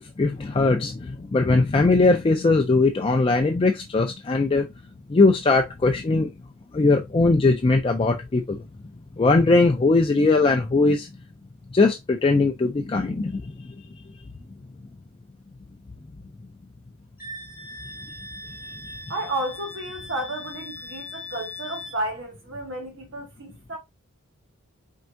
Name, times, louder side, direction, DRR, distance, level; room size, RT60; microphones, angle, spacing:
voice 1, 0.0-4.7 5.1-6.3 6.7-8.6 9.2-11.1 11.7-13.5, left 3 dB, 25° left, 0.4 m, -20 dB
Wind instrument woodwind instrument, 17.2-22.0, left 3 dB, 10° right, 2.3 m, -39 dB
voice 2, 18.8-23.8, right 1 dB, 60° right, 1.0 m, -32 dB
4.5 x 3.5 x 2.5 m
head